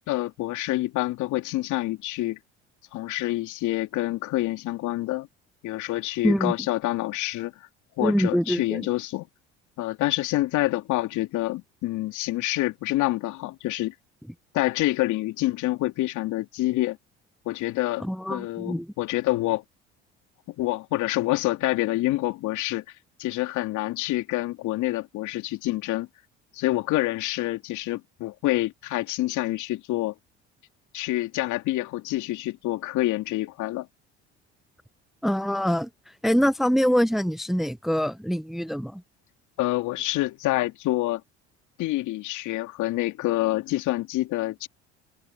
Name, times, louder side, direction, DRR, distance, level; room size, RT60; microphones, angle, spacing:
voice 1, 0.1-2.4 2.9-5.3 5.6-7.5 8.0-9.3 9.8-13.9 14.5-17.0 17.4-19.6 20.5-22.8 23.2-26.1 26.5-30.2 30.9-33.9 39.6-41.2 41.8-44.7, left 17 dB, 60° left, 2.8 m, -27 dB
voice 2, 8.0-8.9 18.0-18.9 35.2-39.0, equal, ahead, 0.9 m, -24 dB
hypercardioid pair, 65°, 33 cm